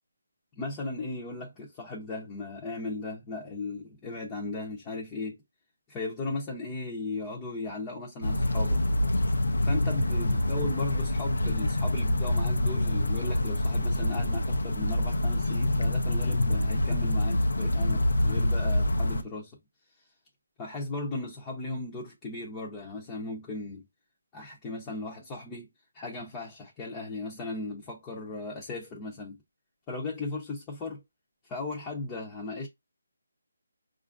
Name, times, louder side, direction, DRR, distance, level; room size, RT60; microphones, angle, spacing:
voice 1, 0.6-5.4 5.9-8.8 9.6-19.5 20.6-23.9 24.3-25.7 25.9-29.4 29.9-31.0 31.4-32.7, left 2 dB, 15° left, 0.7 m, -37 dB
sound 1, 8.2-19.2, left 1 dB, 80° left, 0.7 m, -26 dB
4.8 x 2.5 x 2.4 m
figure-of-eight pair, 160°, 0 cm